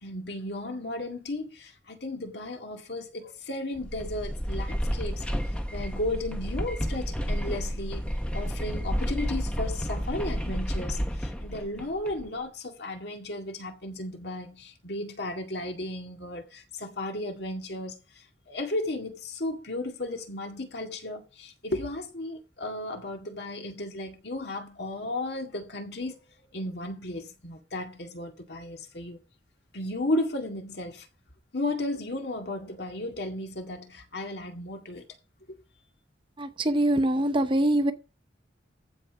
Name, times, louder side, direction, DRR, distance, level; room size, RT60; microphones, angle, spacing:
voice 1, 0.0-5.2 5.7-26.2 26.5-29.2 29.7-31.1 31.5-35.1 35.5-35.6, left 1 dB, 60° left, 2.0 m, -34 dB
sound 1, 3.8-12.3, equal, 5° left, 1.1 m, -31 dB
voice 2, 36.4-37.9, right 1 dB, 25° right, 0.9 m, -24 dB
14.5 x 5.2 x 5.8 m
head